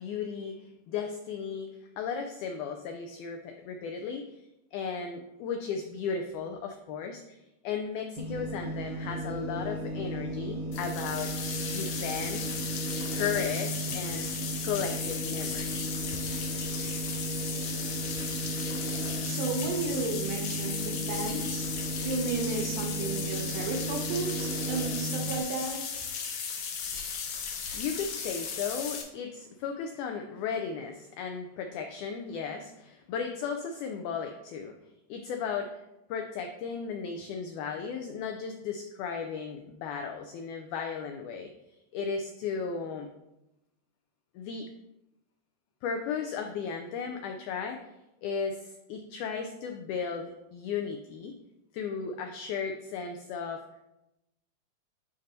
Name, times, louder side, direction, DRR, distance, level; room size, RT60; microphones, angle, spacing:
voice 1, 0.0-1.7 2.0-4.4 4.7-7.4 7.6-11.3 11.7-12.6 13.1-14.3 14.6-15.8 27.7-34.8 35.1-35.8 36.1-41.5 41.9-43.1 44.4-44.7 45.8-47.9 48.2-51.3 51.7-53.6, left 6 dB, 85° left, 4 dB, 1.7 m, -35 dB
sound 1, 8.2-25.4, right 1 dB, 55° right, 1.2 m, -35 dB
sound 2, 10.7-29.0, left 6 dB, 70° left, 1.8 m, -36 dB
voice 2, 19.2-21.7 22.0-25.8, right 3 dB, 75° right, 2 dB, 2.3 m, -33 dB
10.0 x 4.0 x 2.7 m, 0.91 s
omnidirectional pair, 4.0 m